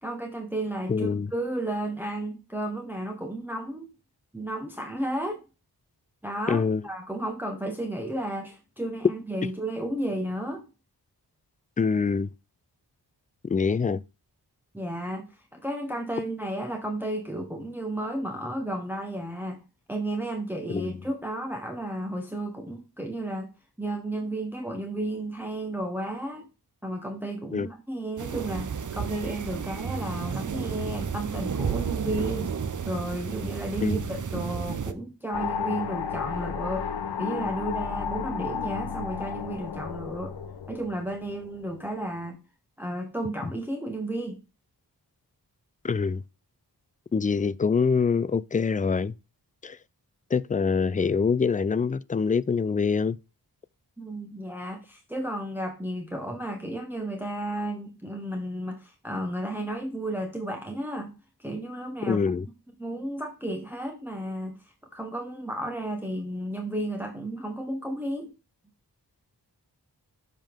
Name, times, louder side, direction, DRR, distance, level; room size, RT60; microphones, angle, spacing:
voice 1, 0.0-3.9 4.3-5.4 6.2-10.7 14.7-19.6 19.9-23.5 23.8-26.5 26.8-32.5 32.8-36.9 37.2-40.3 40.7-42.4 42.8-44.4 54.0-61.1 61.4-62.2 62.8-64.6 64.9-68.3, right 1 dB, 5° right, 1.3 m, -33 dB
voice 2, 0.9-1.3 6.5-6.8 11.8-12.3 13.5-14.0 20.7-20.9 27.5-27.7 33.8-34.0 45.8-46.2 47.1-49.1 49.6-49.8 50.3-53.2 62.1-62.5, left 5 dB, 20° left, 0.3 m, -25 dB
sound 1, 28.2-34.9, right 6 dB, 50° right, 0.7 m, -32 dB
sound 2, 35.3-41.8, left 6 dB, 80° left, 0.8 m, -33 dB
7.4 x 5.2 x 3.6 m
wide cardioid pair, 55°, 40 cm